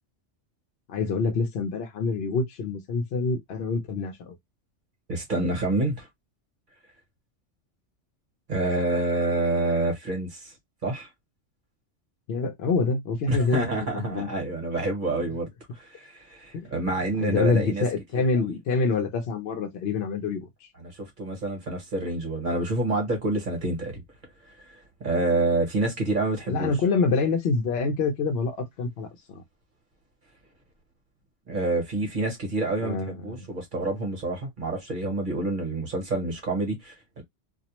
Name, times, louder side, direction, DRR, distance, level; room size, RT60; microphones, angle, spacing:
voice 1, 0.9-4.4 12.3-14.3 16.5-20.5 26.5-29.4 32.8-33.5, left 4 dB, 60° left, 0.8 m, -26 dB
voice 2, 5.1-6.1 8.5-10.5 10.8-11.1 13.3-15.5 15.7-17.8 20.8-24.0 25.0-26.7 31.5-37.2, right 2 dB, 45° right, 1.0 m, -27 dB
2.4 x 2.0 x 2.8 m
omnidirectional pair, 1.3 m